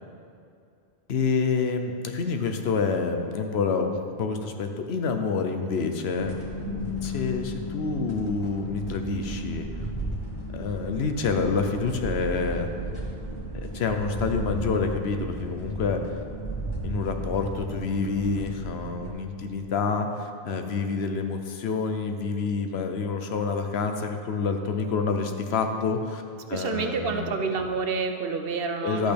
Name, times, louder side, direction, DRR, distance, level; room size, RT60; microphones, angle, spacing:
voice 1, 1.1-9.7 10.5-12.7 13.6-16.0 16.8-26.2 26.5-27.4 28.8-29.1, left 4 dB, 75° left, 6 dB, 1.0 m, -28 dB
sound 1, 6.2-19.1, equal, 25° left, 1.5 m, -34 dB
voice 2, 26.5-29.1, right 5 dB, 65° right, 5 dB, 0.9 m, -28 dB
12.0 x 8.2 x 3.4 m, 2.6 s
omnidirectional pair, 1.1 m